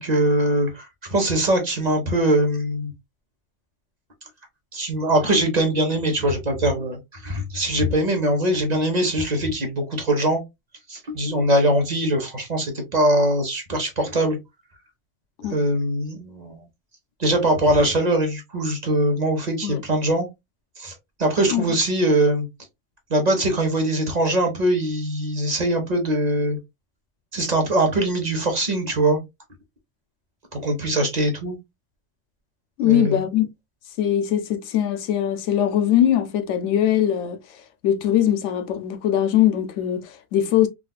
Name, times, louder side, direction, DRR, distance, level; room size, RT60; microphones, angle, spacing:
voice 1, 0.0-2.9 4.7-10.4 10.9-14.4 15.5-16.6 17.2-20.3 20.8-20.9 21.2-22.5 23.1-26.6 27.3-29.2 30.5-31.6 32.8-33.2, right 1 dB, 40° right, 0.9 m, -22 dB
voice 2, 32.8-33.5 34.0-40.7, left 11 dB, 80° left, 0.9 m, -21 dB
3.8 x 2.5 x 2.3 m
omnidirectional pair, 1.2 m